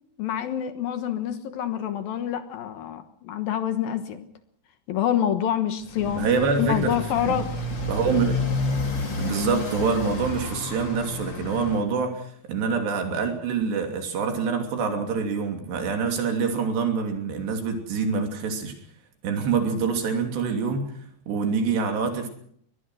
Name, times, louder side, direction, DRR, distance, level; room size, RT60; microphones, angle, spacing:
voice 1, 0.2-4.3 4.9-6.3 6.6-7.5, left 10 dB, 65° left, 9 dB, 2.8 m, -27 dB
Motorcycle, 5.8-11.8, left 3 dB, 30° left, 3.3 m, -30 dB
voice 2, 6.2-6.9 7.3-7.4 7.9-8.4 9.2-18.7 19.2-20.8 21.3-22.3, right 5 dB, 80° right, 4 dB, 5.1 m, -25 dB
22.0 x 20.5 x 6.3 m, 0.63 s
omnidirectional pair, 4.8 m